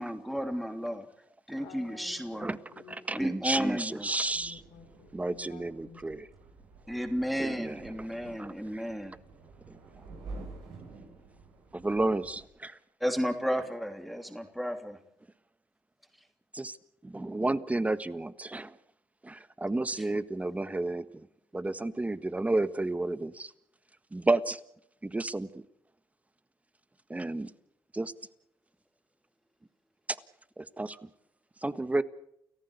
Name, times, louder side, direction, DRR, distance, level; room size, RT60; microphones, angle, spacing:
voice 1, 0.0-1.0 1.5-2.5 3.1-4.1 6.9-9.2 13.0-15.0 20.0-20.1, equal, ahead, 6 dB, 3.1 m, -33 dB
voice 2, 1.6-4.0 4.3-6.0, left 6 dB, 85° left, 6 dB, 4.5 m, -52 dB
voice 3, 3.1-4.6 5.1-6.3 7.4-8.1 8.4-8.8 9.7-9.8 11.7-12.8 16.5-16.8 17.0-18.8 19.2-21.3 21.5-23.5 24.1-24.6 25.0-25.6 27.1-27.5 27.9-28.1 30.6-31.1 31.6-32.0, right 2 dB, 15° right, 14 dB, 1.5 m, -31 dB
sound 1, 4.0-12.4, right 3 dB, 85° right, 7.3 m, -49 dB
29.5 x 14.5 x 8.3 m, 0.76 s
supercardioid pair, 65°, 8 cm